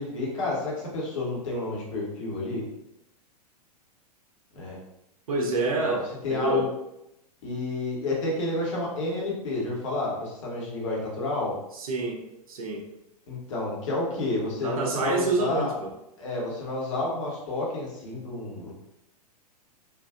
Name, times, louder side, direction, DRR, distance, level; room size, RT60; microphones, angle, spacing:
voice 1, 0.0-2.7 4.5-4.8 5.8-6.7 7.4-11.6 13.3-15.7 16.2-18.7, left 2 dB, 50° left, -4 dB, 1.1 m, -30 dB
voice 2, 5.3-6.0 6.3-6.7 11.7-12.2 12.5-12.9 14.1-14.3 14.5-15.9, right 3 dB, 60° right, 1 dB, 0.7 m, -28 dB
3.4 x 2.5 x 2.4 m, 0.84 s
figure-of-eight pair, 100°, 20 cm